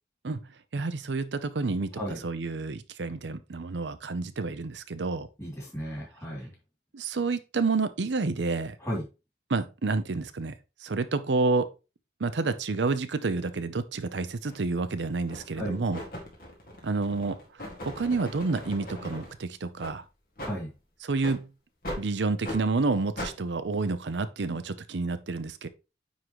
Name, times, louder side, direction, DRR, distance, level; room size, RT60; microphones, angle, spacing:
voice 1, 0.7-5.3 6.9-8.8 9.5-10.5 10.8-11.7 12.2-16.0 16.8-17.4 17.8-20.0 21.0-21.5 22.0-25.7, right 3 dB, 85° right, 0.6 m, -29 dB
voice 2, 5.4-6.5 8.8-9.0 15.6-15.8 20.4-20.7, equal, 15° left, 2.8 m, -34 dB
sound 1, 14.4-14.6 15.3-15.6 15.9-19.3 19.8-19.9 20.4-20.5 21.2-21.4 21.8-22.0 22.4-22.6 23.2-23.3, left 1 dB, 55° left, 2.0 m, -39 dB
9.3 x 3.8 x 3.1 m
head